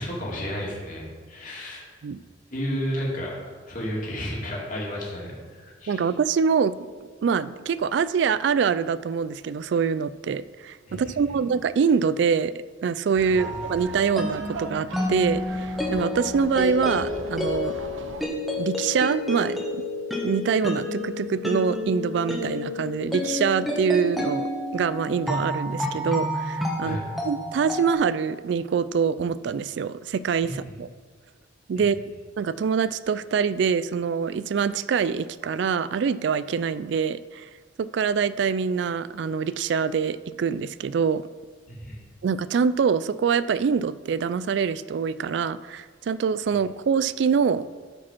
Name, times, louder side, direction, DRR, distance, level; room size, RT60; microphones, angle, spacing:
voice 1, 0.0-1.8 2.1-2.2 2.5-3.3 3.7-6.1 10.9-11.4 13.3-13.4 26.8-27.0 30.4-30.5 41.7-42.0, equal, 45° left, -3 dB, 2.6 m, -32 dB
voice 2, 5.9-6.7 7.2-12.5 12.8-17.7 18.6-19.8 20.2-27.0 27.2-30.9 31.7-32.0 32.4-37.5 37.8-41.3 42.2-47.7, right 6 dB, 65° right, 16 dB, 0.3 m, -25 dB
Laughter, 13.2-18.3, right 3 dB, 90° right, 0.7 m, -39 dB
sound 1, 13.4-27.9, left 1 dB, ahead, 1.4 m, -30 dB
12.5 x 5.0 x 5.8 m, 1.5 s
head